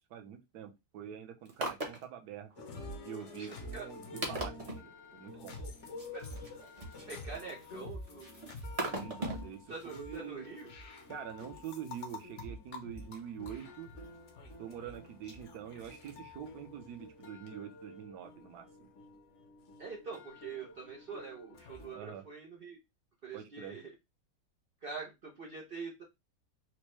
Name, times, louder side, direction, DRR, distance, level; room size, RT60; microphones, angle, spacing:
voice 1, 0.1-2.5 3.0-5.7 8.9-10.4 11.1-13.9 14.6-18.9 21.9-22.2 23.3-23.8, right 9 dB, 65° right, 6 dB, 1.2 m, -45 dB
sound 1, 1.4-2.0 2.5-2.6 3.2-3.3 3.8-3.9 4.2-4.8 6.0-7.6 8.1-9.5 9.8-9.9, right 2 dB, 40° right, 0.5 m, -38 dB
sound 2, 2.6-22.0, left 2 dB, 55° left, 0.8 m, -48 dB
voice 2, 3.4-3.9 6.1-6.2 7.1-8.4 9.7-10.7 19.8-22.8 23.2-23.9 24.8-26.0, right 4 dB, 90° right, -1 dB, 0.5 m, -44 dB
4.4 x 2.1 x 3.0 m, 0.22 s
omnidirectional pair, 1.9 m